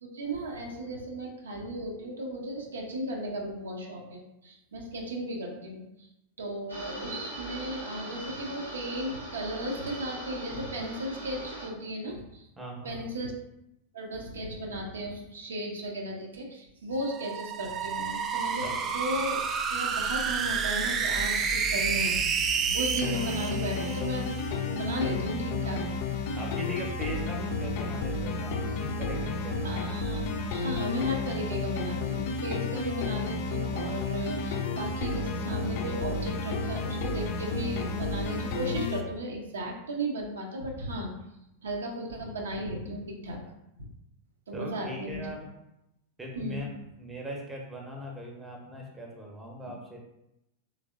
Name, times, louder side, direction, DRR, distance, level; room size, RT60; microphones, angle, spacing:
voice 1, 0.0-6.1 6.4-12.5 12.8-13.3 13.9-22.5 22.7-24.3 24.7-25.9 29.6-41.1 41.6-43.4 44.5-45.3 46.4-46.6, right 1 dB, 70° right, -1 dB, 0.6 m, -35 dB
sound 1, 6.7-11.7, right 1 dB, 90° right, 1.0 m, -40 dB
voice 2, 12.6-13.2 18.6-18.7 26.4-30.0 44.5-45.5 46.2-46.7 47.0-50.0, equal, 10° right, -1 dB, 0.7 m, -40 dB
sound 2, 17.0-24.5, right 5 dB, 30° right, 0.3 m, -29 dB
sound 3, 23.0-39.0, left 3 dB, 50° left, 0.4 m, -32 dB
3.3 x 3.2 x 2.5 m, 0.86 s
figure-of-eight pair, 90°, 0 cm